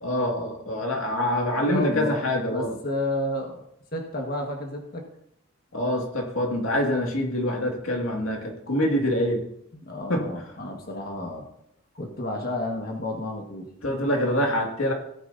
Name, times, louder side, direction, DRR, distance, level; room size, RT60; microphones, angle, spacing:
voice 1, 0.0-2.8 5.7-9.4 10.1-10.3 13.8-14.9, left 1 dB, 90° left, 1 dB, 2.2 m, -25 dB
voice 2, 1.6-2.2 2.5-3.6 3.9-5.0 9.7-11.4 12.0-13.7, left 1 dB, 45° left, 1 dB, 1.7 m, -31 dB
17.0 x 9.3 x 2.8 m, 0.75 s
head